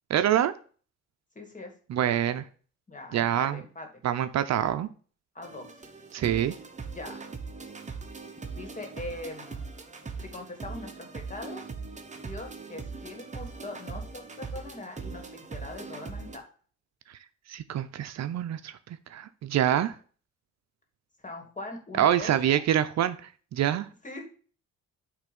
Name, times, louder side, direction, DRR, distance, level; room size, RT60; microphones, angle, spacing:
voice 1, 0.1-0.5 1.9-2.5 3.1-3.6 4.0-4.9 6.1-6.5 17.1-17.2 17.5-20.0 22.0-23.9, right 10 dB, 60° right, 11 dB, 0.6 m, -26 dB
voice 2, 1.4-1.7 2.9-3.9 5.3-5.7 7.0-7.2 8.5-9.7 10.2-11.6 12.1-16.4 21.2-22.6 24.0-24.2, left 2 dB, 25° left, 3 dB, 2.3 m, -41 dB
sound 1, 5.4-16.4, right 4 dB, 25° right, 1.1 m, -40 dB
8.8 x 3.4 x 5.3 m, 0.41 s
cardioid pair, 90°, 30 cm